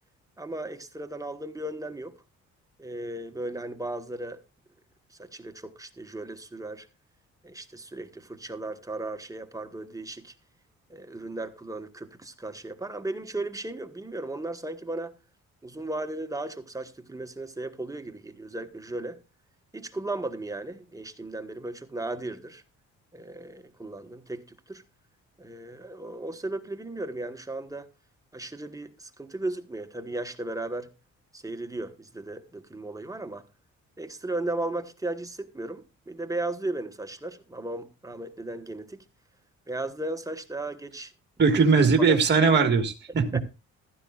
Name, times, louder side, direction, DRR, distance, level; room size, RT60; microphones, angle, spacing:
voice 1, 0.4-2.1 2.8-4.4 5.1-6.9 7.4-10.3 10.9-15.1 15.6-19.2 19.7-22.6 23.1-24.8 25.4-27.9 28.3-30.9 31.3-33.4 34.0-39.0 39.7-41.1 41.7-42.2 43.3-43.4, right 2 dB, 10° right, 1.2 m, -36 dB
voice 2, 41.4-43.4, right 4 dB, 35° right, 1.7 m, -20 dB
14.5 x 12.0 x 2.4 m
cardioid pair, 90°, 30 cm